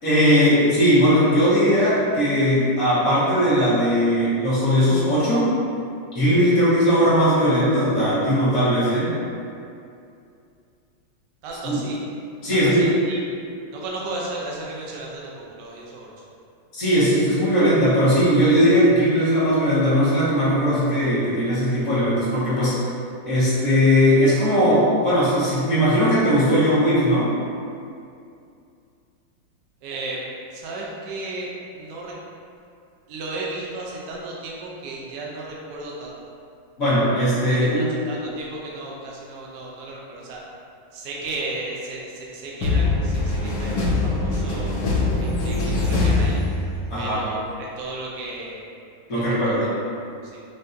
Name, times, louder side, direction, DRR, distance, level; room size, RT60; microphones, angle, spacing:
voice 1, 0.0-5.5 6.1-9.1 11.6-11.8 12.4-12.9 16.7-22.8 23.3-27.3 36.8-37.9 46.9-47.2 49.1-49.6, equal, 50° left, -12 dB, 1.6 m, -19 dB
voice 2, 11.4-12.0 12.5-13.2 13.7-16.1 29.8-32.2 33.1-36.2 37.5-40.4 40.9-44.7 45.2-46.4 47.0-48.6 49.1-49.7 50.2-50.4, right 2 dB, 70° right, -4 dB, 1.1 m, -34 dB
sound 1, 42.6-47.1, left 2 dB, 70° left, 1.2 m, -22 dB
5.6 x 2.6 x 2.6 m, 2.5 s
omnidirectional pair, 2.1 m